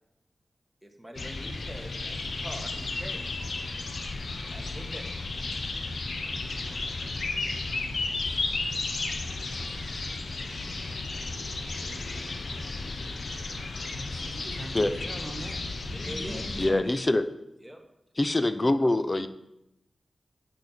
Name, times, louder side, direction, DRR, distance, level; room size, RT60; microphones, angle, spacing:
voice 1, 0.8-3.3 4.5-5.1 6.3-6.7 8.2-8.4 15.9-16.8 17.6-17.8, equal, 5° right, 2 dB, 1.8 m, -44 dB
sound 1, 1.2-16.7, left 3 dB, 75° left, 1.1 m, -33 dB
voice 2, 13.9-16.6, right 1 dB, 45° right, 2 dB, 1.9 m, -42 dB
voice 3, 16.6-17.3 18.2-19.3, left 2 dB, 30° left, 11 dB, 0.7 m, -24 dB
8.3 x 6.7 x 6.5 m, 0.84 s
wide cardioid pair, 65°, 0 cm